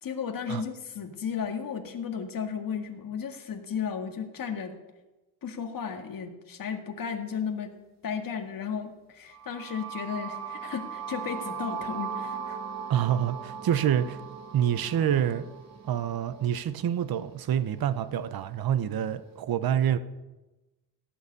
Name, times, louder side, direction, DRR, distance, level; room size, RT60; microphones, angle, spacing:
voice 1, 0.0-4.7 5.4-7.7 8.0-12.6, left 7 dB, 60° left, 2.0 m, -34 dB
sound 1, 9.3-17.2, right 7 dB, 45° right, 2.2 m, -39 dB
voice 2, 12.9-14.2 14.5-15.5 15.9-20.0, right 10 dB, 65° right, 0.9 m, -27 dB
17.0 x 7.1 x 9.8 m
wide cardioid pair, 150°, 39 cm